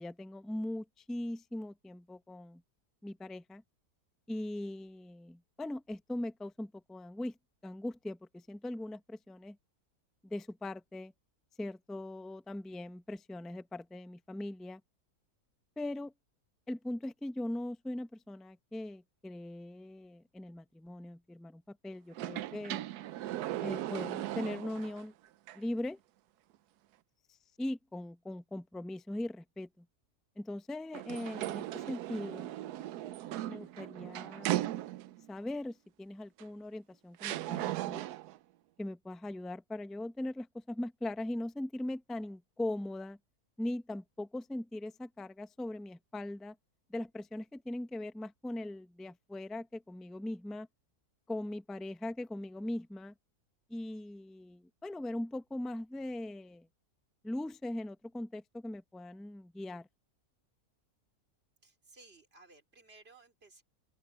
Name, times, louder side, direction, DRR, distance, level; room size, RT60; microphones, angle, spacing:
voice 1, 0.0-2.6 3.0-3.6 4.3-7.3 7.6-9.6 10.2-11.1 11.6-14.8 15.8-16.1 16.7-22.8 23.6-25.1 25.5-26.0 27.6-29.8 30.4-32.5 33.5-34.7 35.3-38.0 38.8-43.2 43.6-46.5 46.9-50.7 51.3-53.1 53.7-56.7 57.2-59.9, left 1 dB, ahead, 0.4 m, -40 dB
sound 1, 22.1-25.0 25.5-25.6 30.9-35.3 36.4-36.5 37.2-38.4, right 14 dB, 85° right, 1.1 m, -37 dB
voice 2, 61.6-63.6, right 3 dB, 40° right, 4.0 m, -58 dB
open air
omnidirectional pair, 1.6 m